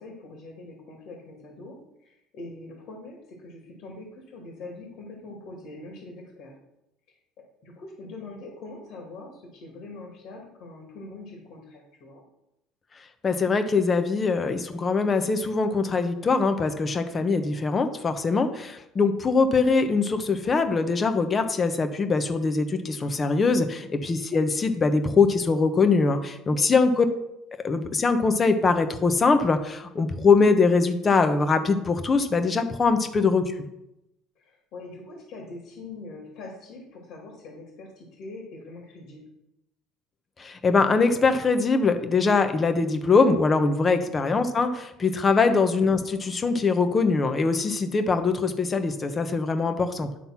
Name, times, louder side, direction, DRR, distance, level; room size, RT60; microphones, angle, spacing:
voice 1, 0.0-1.8 2.0-6.5 7.6-12.2 24.0-24.1 26.5-26.9 33.0-33.2 34.4-39.3 43.9-44.1, left 2 dB, 65° left, 0 dB, 2.4 m, -43 dB
voice 2, 13.2-27.0 27.6-33.4 40.4-50.1, left 4 dB, 30° left, 8 dB, 1.1 m, -22 dB
10.5 x 3.9 x 5.9 m, 0.86 s
supercardioid pair, 90°, 0 cm